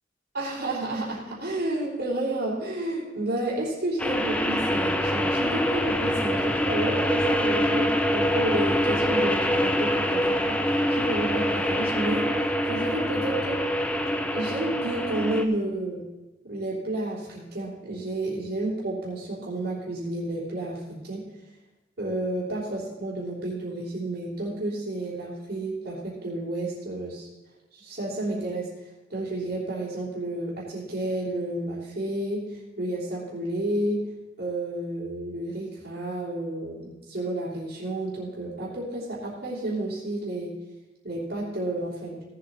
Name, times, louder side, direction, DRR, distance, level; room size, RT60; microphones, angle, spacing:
voice 1, 0.3-13.6 14.3-16.0 16.4-21.2 22.0-27.3 27.7-28.7 29.1-34.1 34.4-40.5 41.0-42.2, right 1 dB, 60° right, -10 dB, 3.4 m, -31 dB
sound 1, 4.0-15.4, equal, 5° left, 0.8 m, -25 dB
17.5 x 7.8 x 4.3 m, 1.1 s
head